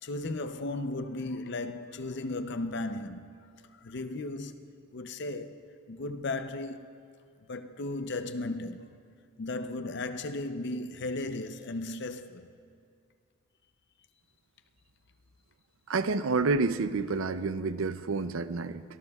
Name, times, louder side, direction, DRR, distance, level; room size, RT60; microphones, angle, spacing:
voice 1, 0.0-3.4 3.7-5.6 5.9-6.9 7.5-9.0 9.4-12.5, left 2 dB, 55° left, 0.6 m, -36 dB
voice 2, 15.9-18.8, right 4 dB, 75° right, 0.5 m, -29 dB
22.5 x 19.0 x 2.3 m
head